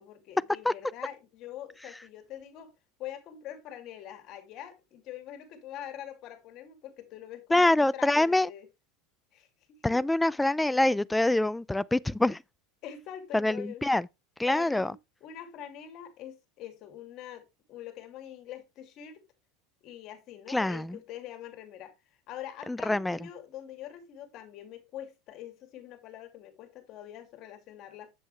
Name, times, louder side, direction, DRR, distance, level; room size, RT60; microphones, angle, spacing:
voice 1, 0.0-2.7 3.0-8.7 9.3-10.0 12.8-13.8 14.5-15.0 15.2-19.2 19.8-22.0 22.3-28.1, left 11 dB, 50° left, 2.6 m, -44 dB
voice 2, 7.5-8.5 9.8-12.4 13.3-14.1 14.4-14.9 20.5-21.0 22.7-23.2, left 2 dB, 5° left, 0.4 m, -25 dB
8.1 x 7.7 x 3.3 m
supercardioid pair, 115°, 0 cm